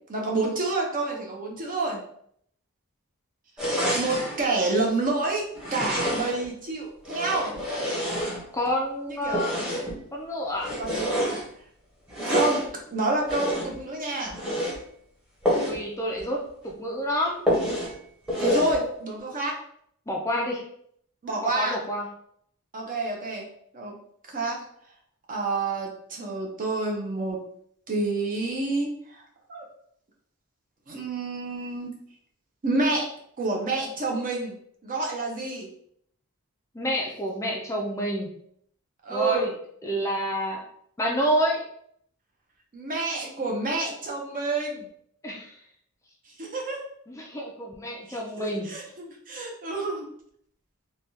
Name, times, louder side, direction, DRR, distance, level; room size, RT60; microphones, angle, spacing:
voice 1, 0.1-2.0 3.9-5.4 5.7-7.5 9.1-9.5 10.8-11.1 12.2-12.6 12.9-14.4 18.4-19.6 21.2-21.8 22.7-23.4 23.7-24.0 24.3-24.6 25.3-27.4 27.9-29.2 29.5-29.6 30.9-31.9 32.6-33.1 33.4-34.5 34.8-35.7 39.0-39.5 42.7-44.9 46.4-46.8 48.1-50.1, right 2 dB, 40° right, -1 dB, 0.7 m, -28 dB
sound 1, 3.6-4.4 5.5-6.5 7.0-8.7 9.3-10.0 10.6-11.4 12.1-12.7 13.3-13.8 14.3-14.8 15.4-15.8 16.2-16.3 16.6-16.7 17.5-17.9 18.3-18.8, equal, 5° right, 0.9 m, -27 dB
voice 2, 8.5-9.5 10.1-10.7 15.6-16.4 16.6-17.4 20.1-20.6 21.4-22.1 36.7-38.3 39.1-39.5 39.8-40.6 41.0-41.6 45.2-45.5 47.2-48.7, equal, 15° left, -1 dB, 0.4 m, -28 dB
3.3 x 2.2 x 2.7 m, 0.66 s
head